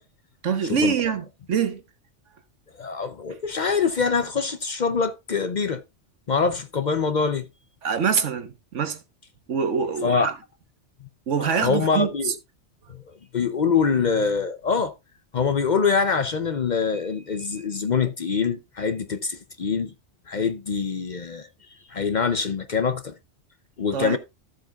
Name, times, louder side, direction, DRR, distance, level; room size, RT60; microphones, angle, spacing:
voice 1, 0.4-1.8 7.8-9.0 9.5-10.4 11.3-12.3 23.9-24.2, right 6 dB, 80° right, 1.5 m, -25 dB
voice 2, 2.8-5.8 6.3-7.5 10.0-10.3 11.4-12.3 12.9-13.0 13.3-14.9 15.3-19.9 20.3-21.5 21.9-23.1 23.8-24.2, left 5 dB, 45° left, 0.7 m, -24 dB
13.0 x 7.5 x 2.4 m
omnidirectional pair, 1.2 m